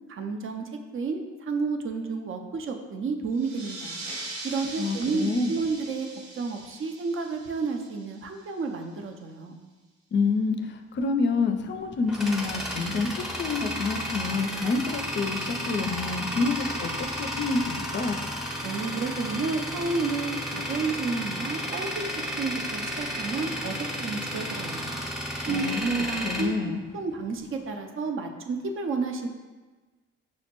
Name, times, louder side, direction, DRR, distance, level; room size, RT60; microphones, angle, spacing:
voice 1, 0.1-0.6 0.9-4.0 4.4-6.1 6.3-9.6 18.6-24.9 25.4-26.5 26.9-29.3, right 4 dB, 45° right, 4 dB, 0.5 m, -31 dB
sound 1, 3.3-8.5, right 2 dB, 60° right, 0.9 m, -41 dB
voice 2, 4.8-5.5 10.1-18.3 25.5-26.8, left 4 dB, 40° left, 6 dB, 0.4 m, -28 dB
Tools, 11.6-27.4, equal, ahead, 0.6 m, -33 dB
6.2 x 2.1 x 2.9 m, 1.3 s
supercardioid pair, 70°, 31 cm